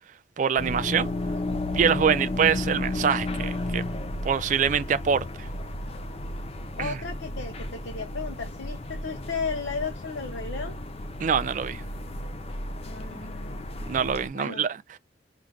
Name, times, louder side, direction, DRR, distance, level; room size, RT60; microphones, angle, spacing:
voice 1, 0.4-1.1 1.7-3.8 4.2-5.5 6.8-7.0 11.2-11.8 13.8-15.0, right 7 dB, 40° right, 0.3 m, -25 dB
sound 1, 0.6-14.3, left 1 dB, 35° left, 0.4 m, -33 dB
voice 2, 6.8-10.8 12.9-13.7 14.3-14.6, left 4 dB, 85° left, 0.7 m, -34 dB
4.9 x 2.5 x 3.1 m
head